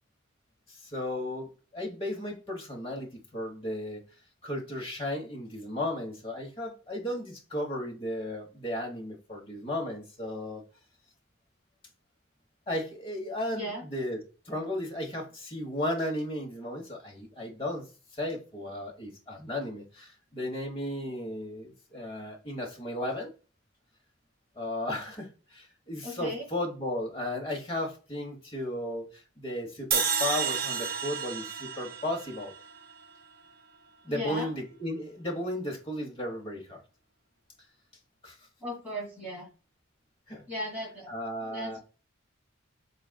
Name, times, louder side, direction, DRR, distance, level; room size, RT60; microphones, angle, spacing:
voice 1, 0.7-4.0 4.4-10.6 12.7-14.2 14.4-17.9 18.1-23.3 24.6-32.5 34.0-36.8 38.2-38.4 40.3-40.4 41.1-41.8, left 1 dB, 25° left, 1.0 m, -35 dB
voice 2, 13.5-13.8 26.0-26.5 34.1-34.5 38.6-39.5 40.5-41.1 41.4-41.8, equal, 10° right, 1.9 m, -36 dB
sound 1, 29.9-33.1, right 6 dB, 45° right, 0.5 m, -31 dB
3.9 x 3.7 x 2.2 m
head